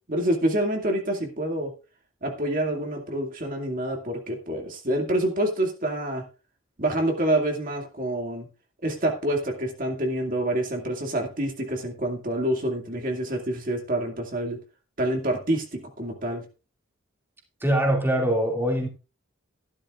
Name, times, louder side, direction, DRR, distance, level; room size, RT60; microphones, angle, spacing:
voice 1, 0.1-1.7 2.2-6.2 6.8-8.5 8.8-14.6 15.0-16.5, right 1 dB, 40° right, 2 dB, 2.3 m, -27 dB
voice 2, 17.6-18.9, right 1 dB, 10° right, 0 dB, 2.4 m, -23 dB
14.0 x 12.0 x 2.5 m, 0.31 s
head